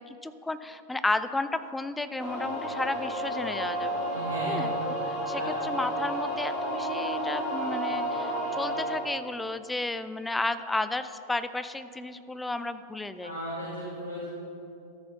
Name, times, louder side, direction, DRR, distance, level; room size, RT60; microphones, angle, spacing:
voice 1, 0.0-4.0 4.5-13.3, left 2 dB, 10° left, 12 dB, 0.4 m, -33 dB
sound 1, 2.2-9.0, right 1 dB, 30° left, 2.3 m, -31 dB
voice 2, 4.1-4.7 5.3-5.5 13.2-14.3, equal, 70° left, -6 dB, 2.0 m, -35 dB
13.5 x 6.7 x 4.1 m, 2.8 s
figure-of-eight pair, 90°, 0 cm